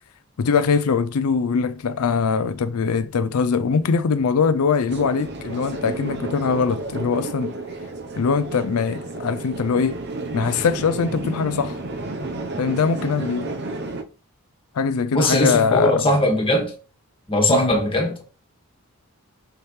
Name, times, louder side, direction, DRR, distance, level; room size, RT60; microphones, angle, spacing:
voice 1, 0.4-7.5 8.2-10.0 10.3-11.8 12.6-13.5 14.7-16.0 17.5-17.7, left 5 dB, 85° left, 0.5 m, -22 dB
sound 1, 4.9-14.0, right 2 dB, 50° right, 0.8 m, -32 dB
voice 2, 15.1-16.7 17.3-18.2, left 1 dB, 25° left, 1.8 m, -20 dB
6.3 x 6.0 x 3.2 m
head